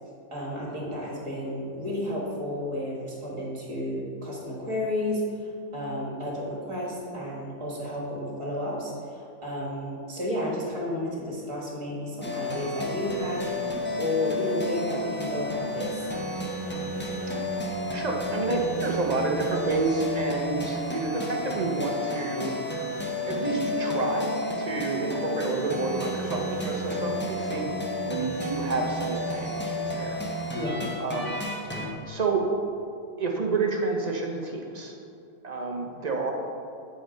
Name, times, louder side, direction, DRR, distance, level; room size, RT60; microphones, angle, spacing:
voice 1, 0.3-16.1 30.5-30.8, left 1 dB, 20° right, -3 dB, 1.5 m, -32 dB
sound 1, 12.2-31.9, left 1 dB, 15° left, 0.4 m, -31 dB
voice 2, 17.9-22.8 23.3-24.3 24.6-27.7 28.0-30.2 31.0-31.4 31.7-31.8 32.1-32.4 33.2-34.9 35.4-36.3, right 3 dB, 40° right, 1 dB, 0.7 m, -29 dB
8.3 x 4.1 x 5.1 m, 2.6 s
omnidirectional pair, 1.5 m